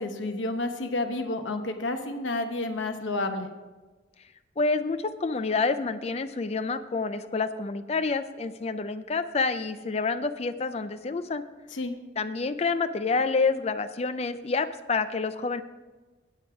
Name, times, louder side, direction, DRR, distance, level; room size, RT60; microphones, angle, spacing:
voice 1, 0.0-3.5 11.7-11.9, left 2 dB, 80° left, 6 dB, 1.0 m, -30 dB
voice 2, 4.6-11.4 12.2-15.6, left 4 dB, 35° left, 11 dB, 0.4 m, -28 dB
8.9 x 8.5 x 4.8 m, 1.2 s
head